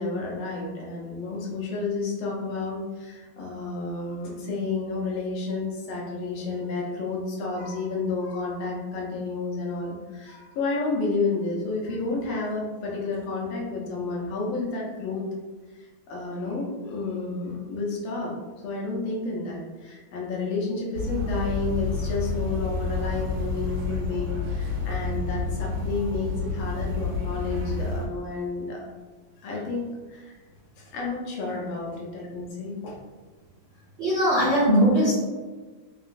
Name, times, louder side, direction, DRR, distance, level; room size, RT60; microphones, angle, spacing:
voice 1, 0.0-15.2 15.8-18.4 18.6-28.9 29.4-30.4 30.8-33.0, left 3 dB, 70° left, -3 dB, 1.5 m, -31 dB
sound 1, 20.9-28.1, left 3 dB, 90° right, 1.5 m, -29 dB
voice 2, 34.0-35.1, equal, 70° right, -11 dB, 0.6 m, -20 dB
3.8 x 2.3 x 2.5 m, 1.3 s
omnidirectional pair, 2.3 m